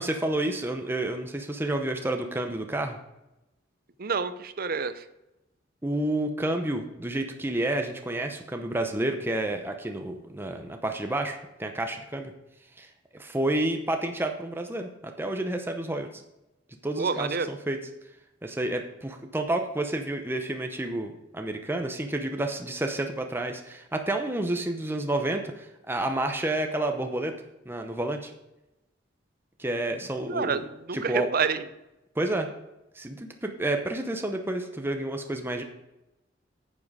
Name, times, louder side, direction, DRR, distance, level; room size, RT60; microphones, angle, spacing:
voice 1, 0.0-3.0 5.8-12.3 12.8-12.9 13.1-16.2 16.8-17.8 18.4-27.3 27.7-28.3 29.6-30.6 30.9-31.3 32.2-32.5 33.0-35.6, right 1 dB, 10° right, 4 dB, 0.8 m, -30 dB
voice 2, 4.0-5.0 17.0-17.5 30.3-31.7, right 5 dB, 50° right, 12 dB, 0.6 m, -28 dB
9.3 x 7.5 x 4.9 m, 0.94 s
head